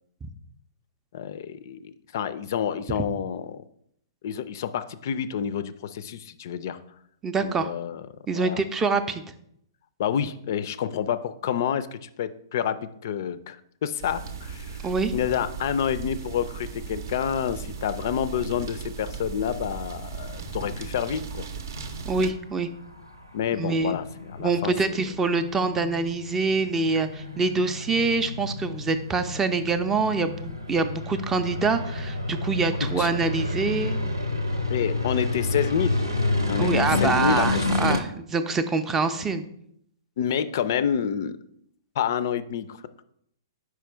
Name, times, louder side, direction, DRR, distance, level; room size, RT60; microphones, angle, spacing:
voice 1, 1.1-3.6 4.2-6.8 7.4-8.1 8.3-8.6 10.0-14.8 15.1-21.5 23.3-24.0 24.3-25.1 33.0-33.1 34.7-36.0 36.5-38.0 40.2-41.4 42.0-42.8, left 8 dB, 50° left, 14 dB, 0.4 m, -28 dB
voice 2, 7.2-7.7 8.3-9.2 14.8-15.1 22.0-22.7 23.5-23.9 24.4-34.0 36.6-39.4, right 4 dB, 15° right, 9 dB, 0.4 m, -25 dB
sound 1, 14.0-22.3, right 6 dB, 55° right, 0.6 m, -37 dB
sound 2, 20.2-38.0, left 2 dB, 90° right, 0.9 m, -30 dB
5.0 x 4.7 x 4.4 m, 0.71 s
figure-of-eight pair, 115°, 2 cm